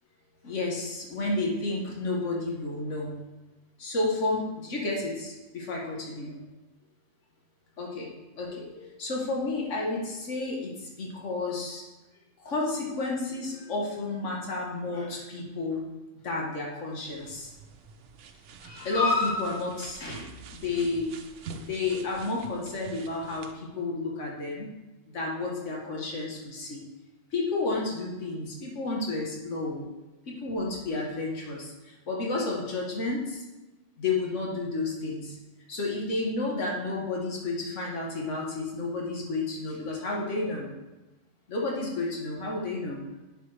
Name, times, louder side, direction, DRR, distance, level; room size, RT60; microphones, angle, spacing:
voice 1, 0.4-3.1 3.8-6.3 7.8-8.1 8.4-11.8 12.4-15.8 16.2-17.5 18.6-20.3 20.6-21.1 21.5-24.7 25.1-26.8 27.3-29.9 30.3-33.4 34.0-35.4 35.7-40.7 41.5-43.0, left 3 dB, 90° left, -2 dB, 1.6 m, -31 dB
sound 1, 17.1-23.5, right 5 dB, 80° right, 1.0 m, -46 dB
10.5 x 6.0 x 3.2 m, 1.1 s
omnidirectional pair, 1.2 m